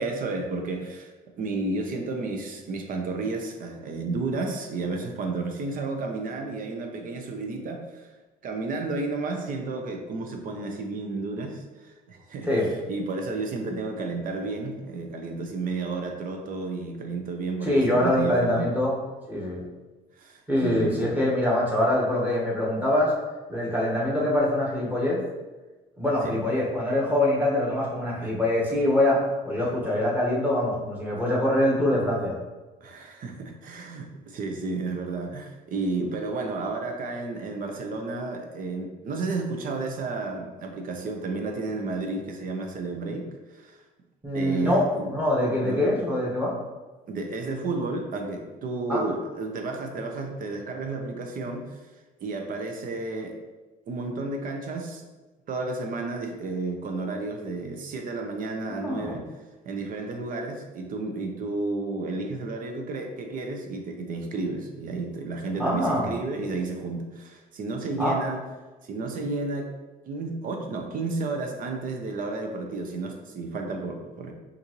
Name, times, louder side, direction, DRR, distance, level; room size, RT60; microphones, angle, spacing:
voice 1, 0.0-8.1 8.4-18.7 20.2-21.2 26.2-26.4 28.2-28.3 29.6-29.7 32.8-43.8 44.3-45.1 45.6-45.8 47.1-51.8 52.2-53.4 53.9-55.0 55.5-59.3 59.6-68.4 68.8-69.7 70.0-74.3, right 3 dB, 55° right, 3 dB, 0.7 m, -32 dB
voice 2, 17.6-19.0 19.3-19.6 20.5-23.1 23.5-25.2 26.0-32.3 44.2-46.6 48.9-49.0 58.7-59.1 65.6-66.1 68.0-68.2, left 1 dB, 10° right, -5 dB, 1.5 m, -24 dB
5.5 x 2.7 x 3.1 m, 1.2 s
cardioid pair, 110°, 17 cm